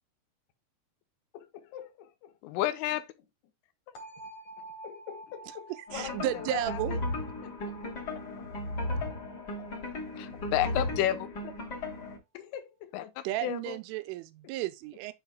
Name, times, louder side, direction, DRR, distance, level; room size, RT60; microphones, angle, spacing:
voice 1, 1.3-2.6 3.9-4.3 4.6-7.0 7.4-7.7 8.9-9.2 10.3-10.4 12.3-13.1 13.4-13.5 14.4-14.5, left 10 dB, 65° left, 3.0 m, -44 dB
voice 2, 2.4-3.1 10.2-11.3 12.9-13.0 13.4-13.8, left 13 dB, 90° left, 3.6 m, -30 dB
sound 1, 4.0-9.8, right 2 dB, 45° left, 3.3 m, -50 dB
sound 2, 5.9-12.2, left 2 dB, 30° left, 2.4 m, -36 dB
voice 3, 5.9-7.0 13.2-15.1, right 14 dB, 90° right, 3.2 m, -33 dB
12.0 x 5.1 x 2.3 m
omnidirectional pair, 5.6 m